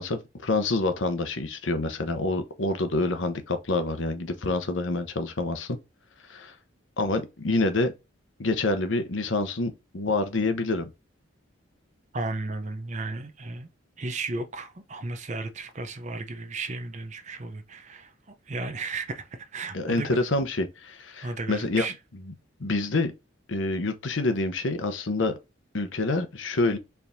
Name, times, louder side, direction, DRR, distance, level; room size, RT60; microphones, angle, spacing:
voice 1, 0.0-5.8 6.3-6.5 7.0-7.9 8.4-10.9 19.7-21.8 22.6-23.1 23.5-25.3 25.7-26.8, left 2 dB, 75° left, 0.8 m, -27 dB
voice 2, 12.1-13.7 14.0-20.2 21.2-22.0, right 3 dB, 40° right, 0.6 m, -34 dB
4.5 x 3.5 x 2.6 m
head